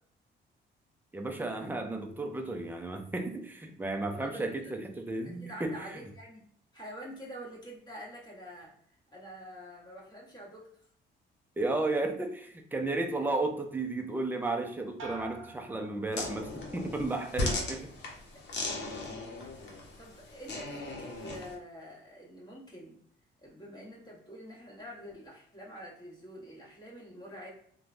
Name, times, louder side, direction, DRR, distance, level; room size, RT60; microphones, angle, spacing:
voice 1, 1.1-6.0 11.6-17.9, right 2 dB, 10° right, 3 dB, 0.5 m, -33 dB
voice 2, 4.1-4.7 5.4-6.4 6.7-8.7 9.1-10.7 13.2-13.3 18.3-18.4 19.5-23.0 23.4-27.5, equal, 20° left, -4 dB, 1.3 m, -46 dB
sound 1, 15.0-16.7 17.1-17.7, right 4 dB, 80° right, 0.6 m, -47 dB
sound 2, 16.1-21.5, left 2 dB, 60° left, 0.8 m, -37 dB
3.0 x 2.2 x 2.5 m, 0.63 s
cardioid pair, 90°, 20 cm